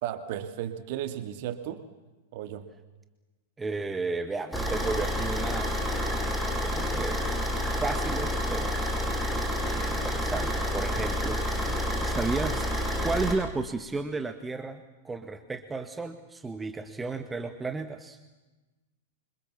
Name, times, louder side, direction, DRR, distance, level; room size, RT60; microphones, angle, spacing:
voice 1, 0.0-1.8 2.3-2.7 11.9-12.0, right 11 dB, 50° right, 9 dB, 2.2 m, -34 dB
voice 2, 3.6-5.8 6.6-7.4 7.8-8.8 9.6-12.7 13.0-18.2, right 3 dB, 10° right, 8 dB, 1.7 m, -33 dB
Car / Idling, 4.5-13.3, equal, 5° left, 7.0 m, -29 dB
28.0 x 26.0 x 7.2 m, 1.1 s
figure-of-eight pair, 100°, 0 cm